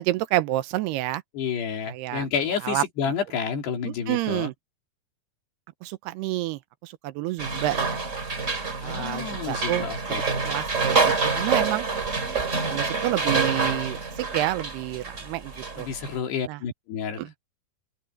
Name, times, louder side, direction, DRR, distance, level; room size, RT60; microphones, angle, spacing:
voice 1, 0.0-1.2 1.9-2.3 2.6-2.8 3.8-4.5 5.8-8.0 8.8-9.9 10.4-11.9 12.6-15.9 16.5-16.6 17.2-17.4, right 16 dB, 85° right, 2.7 m, -29 dB
voice 2, 1.4-4.5 8.8-10.2 15.8-17.3, left 6 dB, 75° left, 5.2 m, -30 dB
sound 1, 7.4-16.2, right 4 dB, 25° right, 2.0 m, -27 dB
open air
omnidirectional pair, 4.9 m